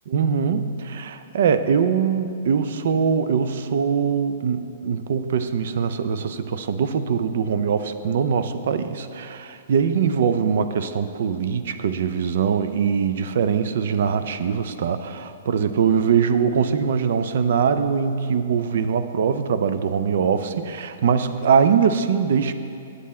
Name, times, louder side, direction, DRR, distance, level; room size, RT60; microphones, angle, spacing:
voice 1, 0.1-22.5, right 6 dB, 65° right, 10 dB, 0.5 m, -22 dB
8.2 x 7.4 x 4.3 m, 2.6 s
hypercardioid pair, 150°, 0 cm